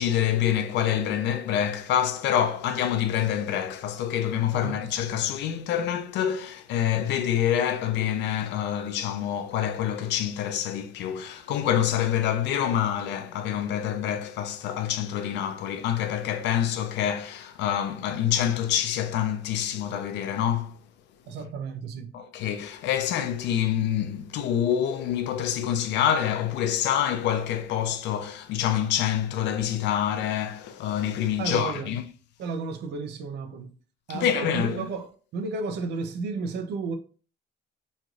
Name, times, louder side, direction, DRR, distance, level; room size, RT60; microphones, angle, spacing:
voice 1, 0.0-20.8 22.1-32.0 34.1-34.9, left 10 dB, 85° left, 0.4 m, -26 dB
voice 2, 21.3-22.2 31.4-31.9 32.4-33.7 34.1-37.0, right 4 dB, 75° right, 0.5 m, -33 dB
3.1 x 2.6 x 2.3 m
cardioid pair, 175°, 18 cm